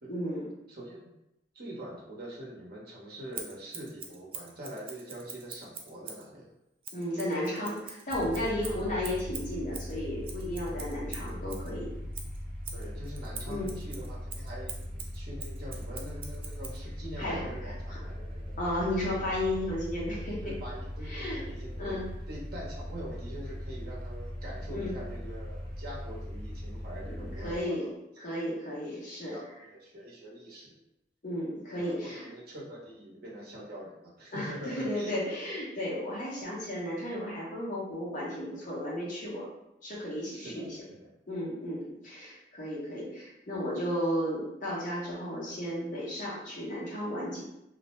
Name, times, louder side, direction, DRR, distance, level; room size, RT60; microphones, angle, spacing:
voice 1, 0.1-0.5 6.9-11.9 13.5-13.8 17.2-18.0 18.6-20.5 21.0-21.4 21.8-22.1 24.7-25.0 27.0-27.9 28.2-29.3 31.2-32.3 34.3-39.5 39.8-40.8 41.3-47.5, left 1 dB, 50° left, -6 dB, 0.9 m, -34 dB
voice 2, 0.7-1.1 1.5-6.5 8.3-8.8 12.7-18.5 20.4-22.0 22.3-27.9 29.3-30.7 31.8-35.1 40.3-40.7 41.0-41.1, right 1 dB, 60° right, -5 dB, 0.8 m, -44 dB
Scissors, 3.3-6.3 6.8-11.7 12.1-16.8, right 6 dB, 30° right, 0.3 m, -44 dB
sound 1, 8.1-27.6, equal, 5° left, 0.6 m, -39 dB
2.5 x 2.0 x 3.1 m, 0.86 s
head